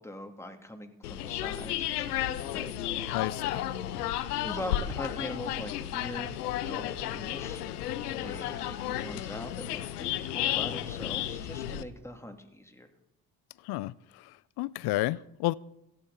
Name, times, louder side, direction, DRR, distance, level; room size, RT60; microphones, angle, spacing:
voice 1, 0.0-2.7 4.4-6.4 6.6-7.6 8.2-12.9, left 1 dB, 5° left, 2.9 m, -42 dB
sound 1, 1.0-11.8, left 12 dB, 85° left, 0.9 m, -33 dB
voice 2, 3.1-3.6 13.6-14.2 14.6-15.5, left 18 dB, 55° left, 0.5 m, -31 dB
17.5 x 15.0 x 4.2 m
hypercardioid pair, 50°, 46 cm